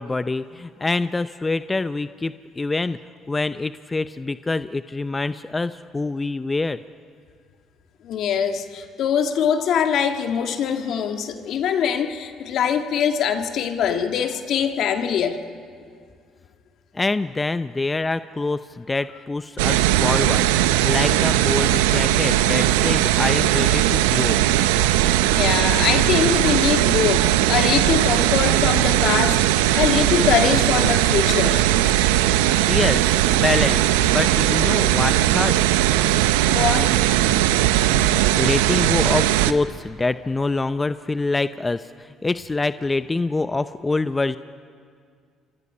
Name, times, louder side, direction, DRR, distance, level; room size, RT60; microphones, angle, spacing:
voice 1, 0.0-3.0 3.3-6.8 16.9-24.4 32.7-35.6 37.9-38.1 38.4-44.4, left 3 dB, 20° left, 12 dB, 0.6 m, -25 dB
voice 2, 8.0-15.4 25.3-29.4 29.7-31.6 36.5-36.9, left 8 dB, 65° left, 6 dB, 1.7 m, -23 dB
sound 1, 19.6-39.5, right 13 dB, 90° right, 0.7 m, -19 dB
29.0 x 25.5 x 5.5 m, 2.2 s
supercardioid pair, 65°, 0 cm